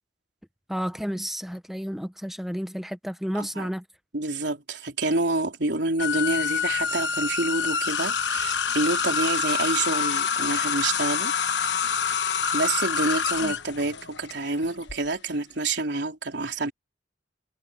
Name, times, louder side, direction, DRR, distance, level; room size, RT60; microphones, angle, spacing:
voice 1, 0.7-3.8 13.4-13.5, equal, ahead, 0.8 m, -31 dB
voice 2, 4.1-11.3 12.5-16.7, right 2 dB, 75° right, 3.8 m, -28 dB
sound 1, 6.0-14.9, left 6 dB, 80° left, 1.1 m, -26 dB
head